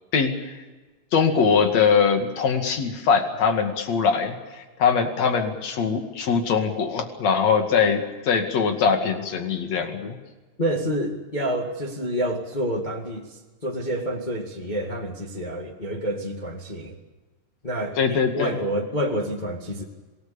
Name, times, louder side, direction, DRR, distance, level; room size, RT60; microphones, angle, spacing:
voice 1, 0.1-0.6 1.1-10.2 18.0-18.5, left 6 dB, 55° left, 5 dB, 3.3 m, -22 dB
voice 2, 10.6-17.0 17.6-19.8, equal, 15° left, 0 dB, 1.7 m, -28 dB
26.5 x 19.0 x 7.0 m, 1.2 s
omnidirectional pair, 3.7 m